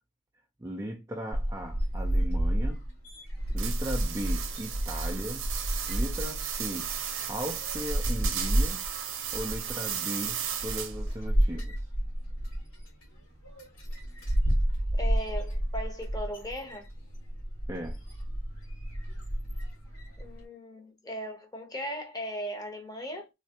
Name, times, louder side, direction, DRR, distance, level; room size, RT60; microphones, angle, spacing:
voice 1, 0.6-2.8 3.5-5.5 5.9-6.9 7.3-8.8 9.3-11.8 17.7-18.0, equal, 15° right, 0.4 m, -37 dB
sound 1, 1.3-20.4, equal, 80° left, 1.8 m, -31 dB
sound 2, 3.6-11.1, right 9 dB, 60° right, 0.7 m, -35 dB
voice 2, 14.9-16.9 20.2-23.3, equal, 15° left, 0.7 m, -38 dB
3.3 x 3.1 x 2.8 m
head